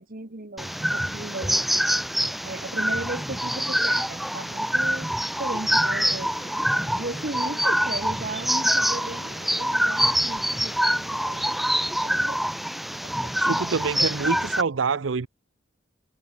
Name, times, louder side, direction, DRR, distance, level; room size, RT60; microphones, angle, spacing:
voice 1, 0.0-1.9 2.4-6.5 7.0-12.4 12.7-13.4, right 2 dB, 50° right, 1.9 m, -37 dB
sound 1, 0.6-14.6, equal, ahead, 0.4 m, -25 dB
Bowed string instrument, 5.7-12.1, right 4 dB, 65° right, 1.6 m, -49 dB
voice 2, 13.4-15.3, right 5 dB, 85° right, 0.6 m, -26 dB
head